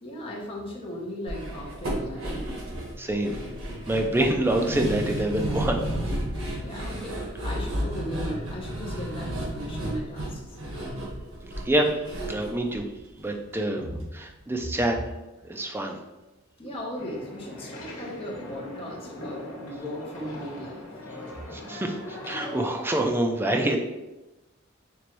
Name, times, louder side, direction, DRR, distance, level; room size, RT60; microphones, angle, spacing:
voice 1, 0.0-2.5 6.5-10.4 13.7-14.0 16.6-20.8, equal, 25° left, -3 dB, 0.7 m, -37 dB
sound 1, 1.3-13.5 13.8-13.9 14.3-14.4, right 1 dB, 80° right, 1.3 m, -33 dB
voice 2, 3.0-3.4 3.9-5.8 11.6-12.8 13.2-13.8 14.1-15.0 15.4-16.0 21.5-23.8, right 1 dB, 10° right, 3 dB, 0.3 m, -26 dB
sound 2, 17.0-22.6, left 1 dB, 85° left, 1.0 m, -40 dB
4.6 x 3.0 x 3.0 m, 1.0 s
head